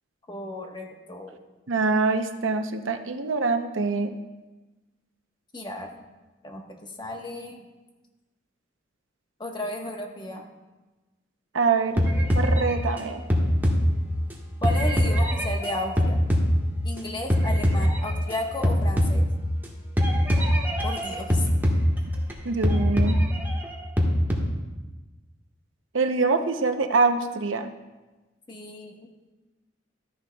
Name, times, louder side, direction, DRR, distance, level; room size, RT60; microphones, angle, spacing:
voice 1, 0.3-1.4 5.5-5.9 6.4-7.6 9.4-10.5 14.6-16.2 16.8-19.3 20.8-21.5 28.5-29.1, left 1 dB, 25° left, 2 dB, 1.2 m, -34 dB
voice 2, 1.7-4.1 11.5-12.0 12.3-13.2 22.4-23.2 25.9-27.7, right 4 dB, 85° right, 8 dB, 0.7 m, -24 dB
sound 1, 12.0-14.3 14.6-17.0 17.3-18.4 18.6-19.7 20.0-22.3 22.6-24.3, equal, 10° right, 1.4 m, -23 dB
13.5 x 10.0 x 2.3 m, 1.2 s
head